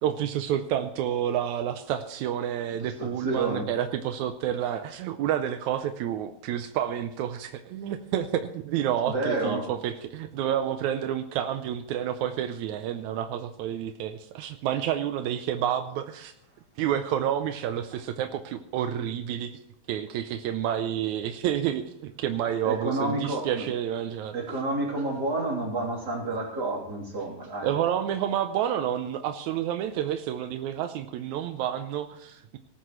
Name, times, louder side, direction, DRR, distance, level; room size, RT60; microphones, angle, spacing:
voice 1, 0.0-16.3 16.8-19.5 19.9-24.4 27.6-32.6, right 10 dB, 80° right, 8 dB, 1.7 m, -29 dB
voice 2, 3.0-3.7 9.1-9.7 22.6-23.7 24.3-27.7, right 2 dB, 30° right, -1 dB, 3.5 m, -29 dB
18.5 x 14.0 x 3.1 m, 0.79 s
omnidirectional pair, 4.1 m